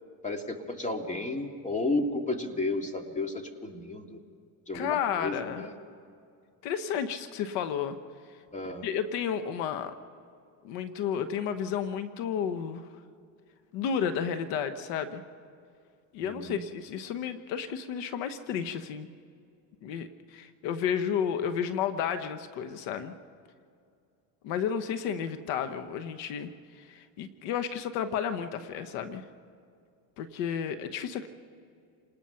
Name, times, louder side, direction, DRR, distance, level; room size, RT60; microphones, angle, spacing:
voice 1, 0.2-4.2 4.7-5.7 8.5-8.9 16.2-16.7, left 2 dB, 15° left, 4 dB, 2.4 m, -33 dB
voice 2, 4.7-5.7 6.6-8.0 8.8-9.9 10.6-12.8 13.7-15.2 16.1-19.1 19.8-23.1 24.4-26.5 26.8-29.2 30.2-31.3, left 8 dB, 80° left, 10 dB, 1.3 m, -32 dB
28.5 x 20.0 x 5.8 m, 2.4 s
cardioid pair, 115°, 43 cm